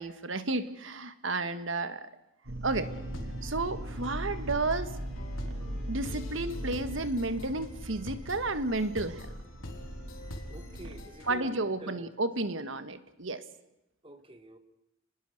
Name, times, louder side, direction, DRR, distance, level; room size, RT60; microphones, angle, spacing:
voice 1, 0.0-2.1 2.6-2.9 3.4-4.9 5.9-9.3 11.3-13.4, right 2 dB, 65° right, 1.5 m, -32 dB
sound 1, 2.4-11.0, right 1 dB, 90° right, 2.5 m, -39 dB
sound 2, 2.7-11.3, left 1 dB, 80° left, 3.9 m, -46 dB
voice 2, 10.5-12.1 14.0-14.6, right 1 dB, 25° right, 1.6 m, -47 dB
29.5 x 20.5 x 6.6 m
head